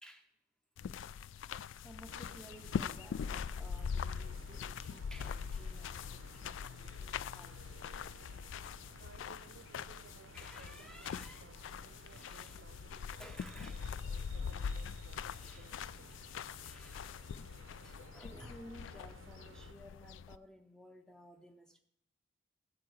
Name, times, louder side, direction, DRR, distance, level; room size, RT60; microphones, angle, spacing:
sound 1, 0.8-20.4, left 6 dB, 70° left, 0.3 m, -43 dB
voice 1, 1.8-7.6 10.3-11.7 12.0-12.6 13.2-13.8 15.2-15.7 16.1-16.2 16.6-21.8, equal, 5° left, 0.6 m, -56 dB
sound 2, 1.9-15.3, equal, 55° left, 3.8 m, -69 dB
sound 3, 2.1-19.7, right 4 dB, 85° right, 0.7 m, -58 dB
voice 2, 9.0-13.4 13.7-16.4 17.0-17.1, right 6 dB, 60° right, 0.4 m, -61 dB
14.0 x 4.7 x 7.9 m
head